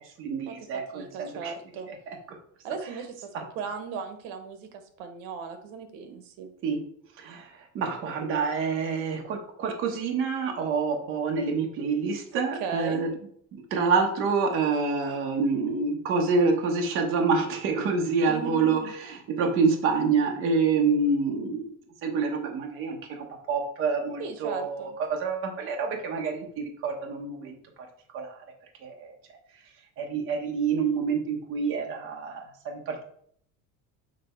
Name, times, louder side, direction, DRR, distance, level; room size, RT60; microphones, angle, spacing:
voice 1, 0.0-1.5 1.9-2.2 6.6-6.8 7.2-13.1 13.7-21.7 22.0-27.6 28.1-28.4 28.8-29.1 30.0-33.0, right 4 dB, 35° right, 1 dB, 1.0 m, -27 dB
voice 2, 0.9-1.9 2.6-3.3 3.5-6.5 12.3-13.0 18.3-18.9 24.2-25.0, right 5 dB, 80° right, 7 dB, 1.2 m, -36 dB
7.6 x 3.4 x 4.3 m, 0.64 s
cardioid pair, 180°, 35 cm